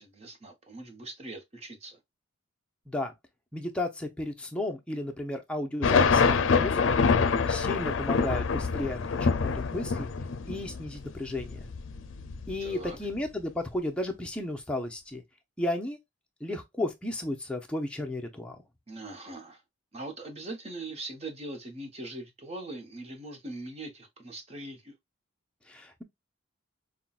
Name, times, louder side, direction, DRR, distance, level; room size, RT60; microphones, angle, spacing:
voice 1, 0.0-2.0 12.6-13.0 18.9-19.6 19.9-24.9, right 2 dB, 30° right, 1.0 m, -41 dB
voice 2, 3.5-7.0 7.5-10.1 10.5-11.7 12.5-15.2 15.6-16.0 16.4-18.6 25.7-26.0, left 1 dB, 5° left, 0.7 m, -34 dB
sound 1, 5.8-13.1, left 5 dB, 75° left, 0.5 m, -26 dB
5.6 x 2.3 x 2.4 m
head